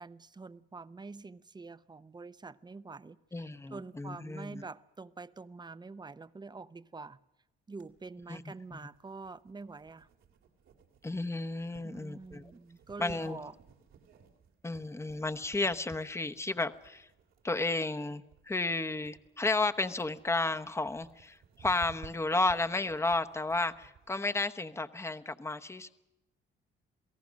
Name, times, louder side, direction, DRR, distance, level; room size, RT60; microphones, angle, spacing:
voice 1, 0.0-7.2 7.7-10.1 11.8-13.5, right 3 dB, 20° right, 0.7 m, -46 dB
voice 2, 3.3-4.6 8.3-8.8 11.0-12.4 13.0-13.4 14.6-17.1 17.4-25.9, left 2 dB, 15° left, 0.9 m, -33 dB
sound 1, 7.8-24.1, right 7 dB, 80° right, 2.7 m, -58 dB
27.5 x 17.5 x 6.3 m
cardioid pair, 90°, 20 cm